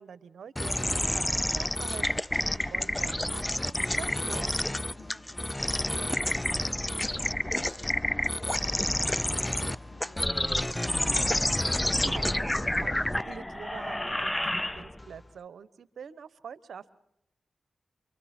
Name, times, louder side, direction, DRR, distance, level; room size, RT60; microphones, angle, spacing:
voice 1, 0.0-4.6 12.0-17.0, right 7 dB, 80° right, 16 dB, 1.0 m, -45 dB
sound 1, 0.6-15.1, left 1 dB, 15° left, 0.7 m, -29 dB
voice 2, 4.9-5.9 6.2-11.6, left 4 dB, 65° left, 7 dB, 2.8 m, -54 dB
30.0 x 24.5 x 4.4 m, 0.80 s
cardioid pair, 45°, 0 cm